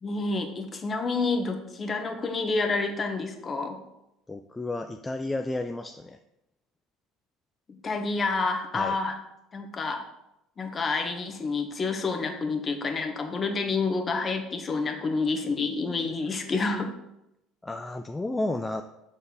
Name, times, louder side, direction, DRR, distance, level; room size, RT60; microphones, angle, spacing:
voice 1, 0.0-3.8 7.8-9.2 9.5-10.0 10.6-16.9, left 3 dB, 35° left, 5 dB, 1.0 m, -28 dB
voice 2, 4.3-6.2 8.7-9.0 17.6-18.8, left 2 dB, 15° left, 6 dB, 0.3 m, -32 dB
6.8 x 4.1 x 3.8 m, 0.87 s
hypercardioid pair, 65°, 0 cm